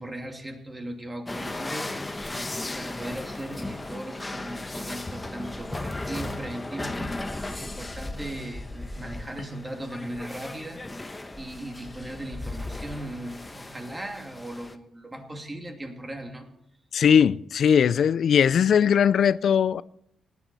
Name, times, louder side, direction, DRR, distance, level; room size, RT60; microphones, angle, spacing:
voice 1, 0.0-7.1 7.5-10.8 11.3-16.5, right 1 dB, 20° right, 2.7 m, -38 dB
sound 1, 1.3-14.7, left 2 dB, 20° left, 1.1 m, -36 dB
voice 2, 16.9-19.8, left 8 dB, 65° left, 0.4 m, -20 dB
18.0 x 11.0 x 4.2 m
cardioid pair, 90°, 0 cm